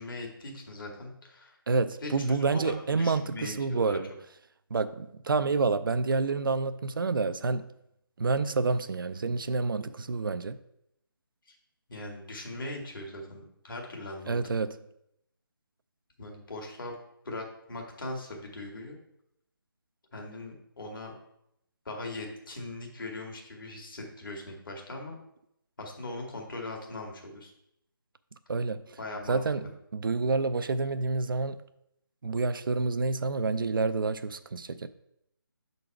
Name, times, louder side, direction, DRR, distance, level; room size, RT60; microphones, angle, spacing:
voice 1, 0.0-1.6 2.0-4.0 11.5-11.6 11.9-14.4 16.2-17.0 17.3-19.0 20.1-21.1 21.9-25.2 25.8-27.5 29.0-29.4, left 2 dB, 60° left, 1.8 m, -40 dB
voice 2, 1.7-4.1 4.7-7.7 8.2-10.6 14.3-14.8 28.5-29.0 29.3-29.7 29.9-31.6 32.2-34.9, right 4 dB, 65° right, 0.4 m, -28 dB
6.8 x 4.0 x 4.5 m
figure-of-eight pair, 155°, 12 cm